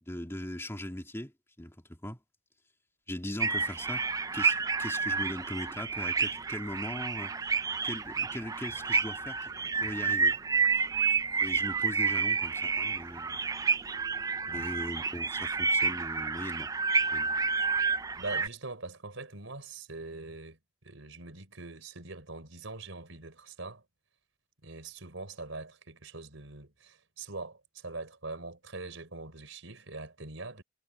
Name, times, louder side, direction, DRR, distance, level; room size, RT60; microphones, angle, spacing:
voice 1, 0.0-2.2 3.1-4.0 4.3-7.4 7.8-10.4 11.4-13.5 14.5-16.7 17.0-17.4, left 1 dB, 15° left, 2.7 m, -40 dB
sound 1, 3.4-18.5, right 5 dB, 20° right, 0.3 m, -30 dB
voice 2, 18.2-23.8 24.6-30.6, right 3 dB, 80° right, 4.2 m, -43 dB
head